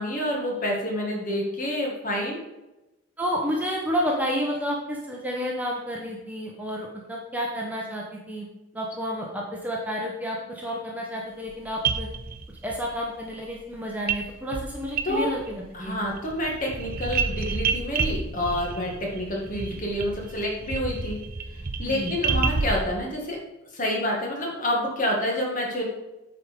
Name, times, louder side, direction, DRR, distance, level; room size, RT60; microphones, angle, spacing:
voice 1, 0.0-2.4 15.0-15.3 15.7-21.2 21.8-23.4 23.7-25.9, left 1 dB, 40° left, -1 dB, 2.0 m, -28 dB
voice 2, 3.2-8.5 8.7-12.1 12.6-16.0 21.8-22.2, equal, 10° right, -2 dB, 1.0 m, -30 dB
sound 1, 11.5-11.6 11.8-12.8 14.1-14.3 14.5-15.6 15.8-22.8, right 4 dB, 45° right, 0.6 m, -29 dB
8.9 x 4.8 x 5.3 m, 1.0 s
head